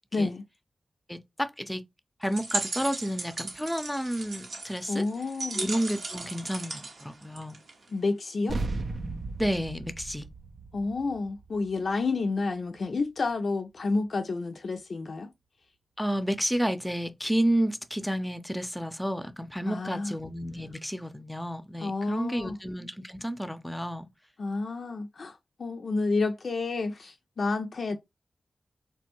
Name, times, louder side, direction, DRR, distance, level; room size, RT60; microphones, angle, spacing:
voice 1, 0.1-0.4 4.9-5.6 7.9-8.6 10.7-15.3 19.7-20.1 21.8-22.6 24.4-28.0, left 3 dB, 75° left, 0.3 m, -30 dB
voice 2, 1.1-1.8 2.2-5.1 5.5-7.6 9.4-10.3 16.0-24.1, equal, 5° left, 0.5 m, -31 dB
sound 1, 2.2-7.9, right 3 dB, 85° right, 0.8 m, -37 dB
sound 2, 8.5-13.3, right 3 dB, 70° right, 0.4 m, -37 dB
3.2 x 2.1 x 2.9 m
cardioid pair, 40°, 0 cm